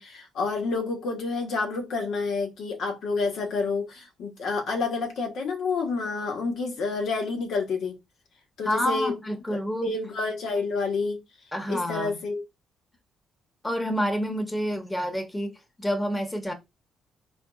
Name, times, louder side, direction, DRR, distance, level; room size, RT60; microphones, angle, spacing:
voice 1, 0.0-8.0 8.6-9.1 9.5-11.2 11.7-12.4, left 4 dB, 70° left, 1.5 m, -29 dB
voice 2, 8.6-9.9 11.5-12.2 13.6-16.5, equal, 15° left, 1.3 m, -28 dB
3.6 x 3.5 x 3.6 m
cardioid pair, 90°, 0 cm